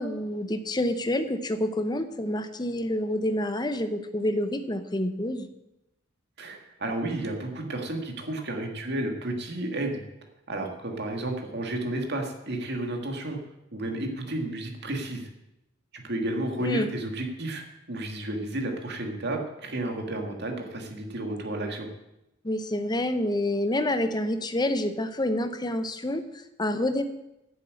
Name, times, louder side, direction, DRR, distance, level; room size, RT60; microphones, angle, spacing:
voice 1, 0.0-5.5 16.6-16.9 22.4-27.0, left 1 dB, 20° left, 9 dB, 0.9 m, -28 dB
voice 2, 6.4-10.0 10.5-13.4 13.7-15.3 15.9-21.9, right 1 dB, 60° right, 3 dB, 2.2 m, -32 dB
10.5 x 7.6 x 8.5 m, 0.91 s
head